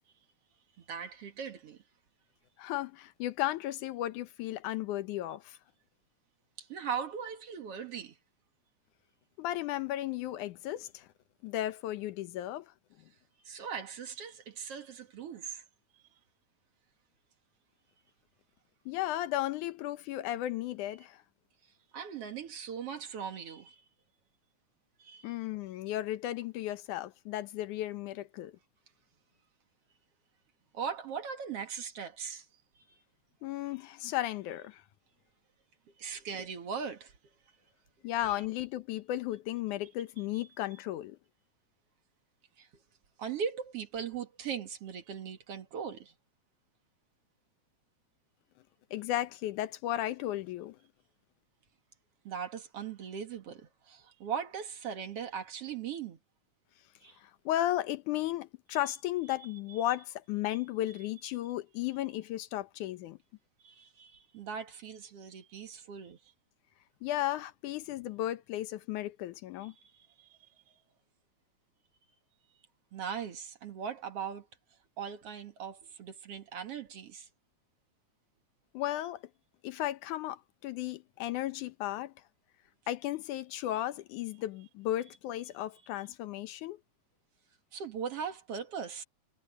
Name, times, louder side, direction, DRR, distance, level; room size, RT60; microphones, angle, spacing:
voice 1, 0.8-1.8 6.6-8.2 13.4-15.6 21.9-23.8 25.0-25.3 30.7-32.5 32.8-33.0 36.0-37.1 42.6-42.7 43.2-46.1 52.2-56.2 57.0-57.2 63.6-66.2 69.6-70.4 72.9-74.5 75.0-77.3 87.7-89.0, right 7 dB, 55° right, 2.4 m, -39 dB
voice 2, 2.6-5.6 9.4-11.1 11.4-12.7 18.9-21.2 25.2-28.5 33.4-34.8 38.0-41.2 48.9-50.8 57.2-63.2 67.0-69.7 78.7-79.2 79.6-82.1 82.9-86.8, left 14 dB, 85° left, 2.4 m, -35 dB
omnidirectional pair, 3.4 m